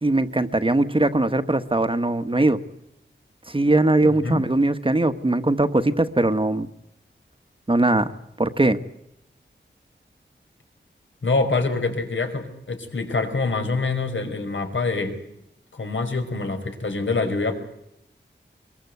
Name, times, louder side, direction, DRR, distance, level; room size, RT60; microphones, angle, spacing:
voice 1, 0.0-2.6 3.5-6.7 7.7-8.1 8.4-8.8, right 2 dB, 25° right, 10 dB, 1.4 m, -20 dB
voice 2, 4.0-4.4 11.2-15.2 15.7-17.5, left 3 dB, 75° left, 6 dB, 5.3 m, -25 dB
24.5 x 22.5 x 8.1 m, 0.81 s
wide cardioid pair, 95°, 20 cm